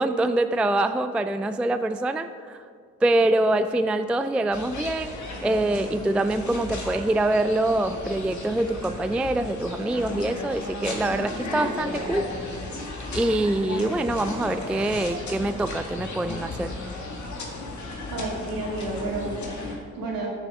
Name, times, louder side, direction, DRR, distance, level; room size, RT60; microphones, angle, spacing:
voice 1, 0.0-2.6 3.0-12.3 13.1-16.7, right 2 dB, 5° right, 10 dB, 0.3 m, -25 dB
sound 1, 4.5-19.8, left 2 dB, 45° left, 2.0 m, -35 dB
voice 2, 18.1-20.3, right 2 dB, 60° right, -3 dB, 2.7 m, -31 dB
13.5 x 6.6 x 3.8 m, 2.1 s
hypercardioid pair, 45°, 38 cm